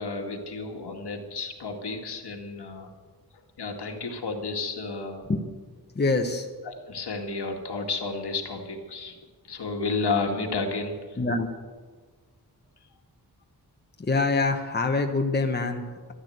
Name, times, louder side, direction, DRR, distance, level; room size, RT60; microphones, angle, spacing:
voice 1, 0.0-2.9 3.3-5.3 6.7-9.2 9.4-11.2, left 3 dB, 80° left, 2 dB, 2.2 m, -32 dB
voice 2, 5.9-6.5 11.2-11.5 14.0-16.1, left 3 dB, 25° left, 4 dB, 1.1 m, -25 dB
13.5 x 12.0 x 8.0 m, 1.5 s
wide cardioid pair, 150°, 39 cm